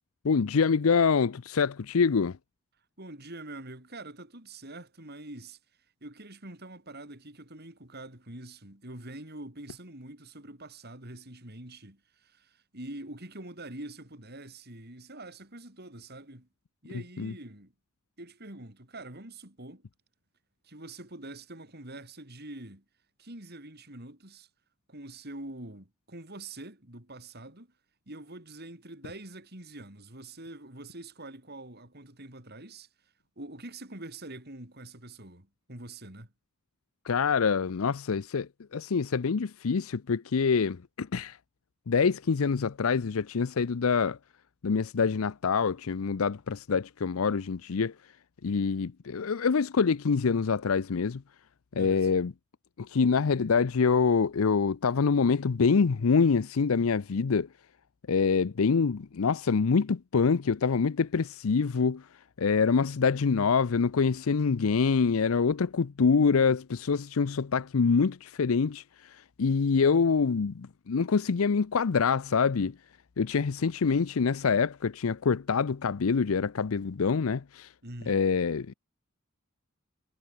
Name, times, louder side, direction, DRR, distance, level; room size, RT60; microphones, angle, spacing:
voice 1, 0.2-2.4 17.2-17.3 37.1-41.4 41.9-44.2 44.6-47.9 48.4-51.2 51.8-52.3 52.8-57.5 58.1-62.0 62.4-68.8 69.4-72.7 73.2-77.7 78.1-78.7, left 5 dB, 80° left, 0.6 m, -25 dB
voice 2, 3.0-5.6 6.0-16.5 16.8-17.7 18.2-19.9 20.6-22.8 23.2-24.5 24.9-27.7 28.1-32.9 33.4-36.3 51.7-52.1 77.8-78.3, right 2 dB, 50° right, 6.1 m, -45 dB
head